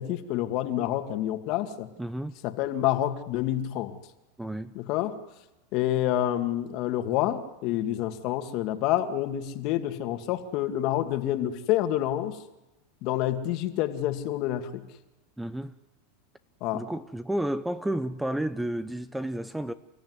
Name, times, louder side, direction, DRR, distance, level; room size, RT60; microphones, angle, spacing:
voice 1, 0.0-1.9 2.4-4.0 4.8-5.1 5.7-12.4 13.0-14.8 16.6-16.8, left 12 dB, 55° left, 2.2 m, -28 dB
voice 2, 2.0-2.3 4.4-4.7 15.4-15.7 16.7-19.7, right 1 dB, 5° right, 0.8 m, -31 dB
29.0 x 15.0 x 9.6 m
supercardioid pair, 125°, 0 cm